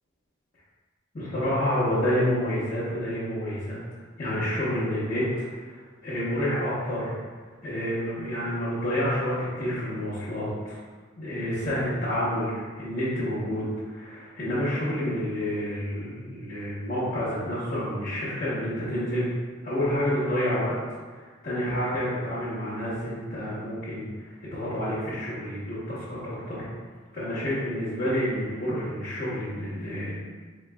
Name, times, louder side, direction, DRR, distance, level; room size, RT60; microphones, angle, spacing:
voice 1, 1.1-3.8 4.2-5.3 5.6-7.1 7.6-10.8 11.2-19.3 19.6-20.7 21.2-26.7 27.1-30.2, equal, 50° left, -13 dB, 1.0 m, -29 dB
4.1 x 3.1 x 2.3 m, 1.5 s
head